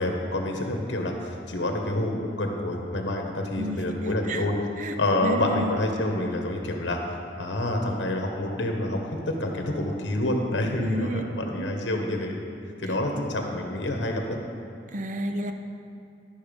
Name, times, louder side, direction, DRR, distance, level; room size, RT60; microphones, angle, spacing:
voice 1, 0.0-4.5 5.0-7.0 7.4-9.0 9.3-12.4 12.8-14.4, left 1 dB, 75° left, 2 dB, 1.2 m, -27 dB
voice 2, 5.2-5.7 10.8-11.2 11.6-11.7 12.9-13.2 14.9-15.5, right 1 dB, 45° right, 6 dB, 0.6 m, -31 dB
12.0 x 5.6 x 5.2 m, 2.5 s
head